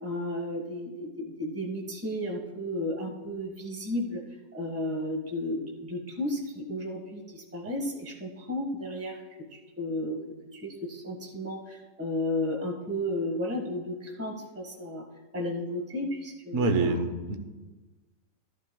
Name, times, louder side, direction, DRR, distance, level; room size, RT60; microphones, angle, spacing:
voice 1, 0.0-4.2 4.5-9.2 9.5-10.2 10.5-15.0 15.3-17.0, left 1 dB, 10° right, -1 dB, 1.5 m, -33 dB
voice 2, 16.5-17.4, right 3 dB, 45° right, 5 dB, 1.1 m, -26 dB
15.0 x 11.5 x 2.3 m, 1.2 s
omnidirectional pair, 1.8 m